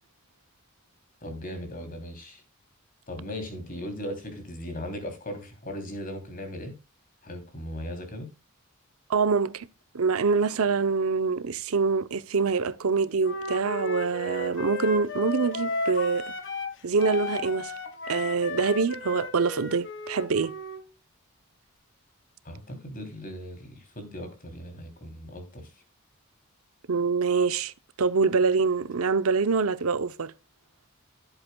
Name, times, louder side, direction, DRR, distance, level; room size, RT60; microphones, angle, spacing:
voice 1, 1.2-2.4 3.1-6.8 7.2-8.3 22.4-25.7, equal, 40° left, 3.0 m, -38 dB
voice 2, 9.1-9.7 9.9-16.3 16.8-17.7 18.1-20.5 26.9-27.7 28.0-30.3, right 4 dB, 80° right, 0.7 m, -25 dB
Wind instrument woodwind instrument, 13.2-16.7 17.0-20.9, left 3 dB, 60° left, 1.6 m, -34 dB
15.5 x 8.0 x 2.2 m
head